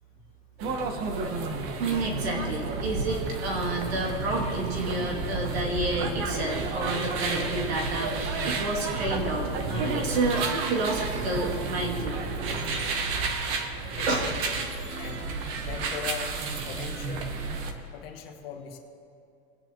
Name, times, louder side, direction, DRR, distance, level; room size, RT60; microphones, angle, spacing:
sound 1, 0.6-17.7, right 4 dB, 40° right, 1.3 m, -31 dB
voice 1, 1.1-1.7 14.0-14.6 15.0-16.4 16.6-17.3 17.9-18.8, left 7 dB, 65° left, 2 dB, 1.6 m, -40 dB
voice 2, 1.8-12.2 13.0-13.7 14.0-14.3, right 2 dB, 85° right, -2 dB, 2.7 m, -30 dB
22.5 x 9.6 x 3.0 m, 2.7 s
supercardioid pair, 140°, 31 cm